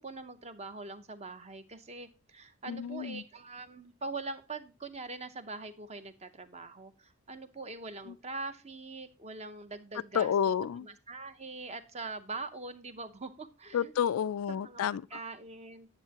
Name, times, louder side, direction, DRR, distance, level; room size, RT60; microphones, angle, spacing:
voice 1, 0.0-10.3 10.8-13.9 14.5-14.8 15.1-15.9, right 3 dB, 30° right, 0.7 m, -43 dB
voice 2, 2.7-3.2 10.1-10.9 13.7-15.0, left 8 dB, 75° left, 0.3 m, -30 dB
9.8 x 7.3 x 2.9 m
head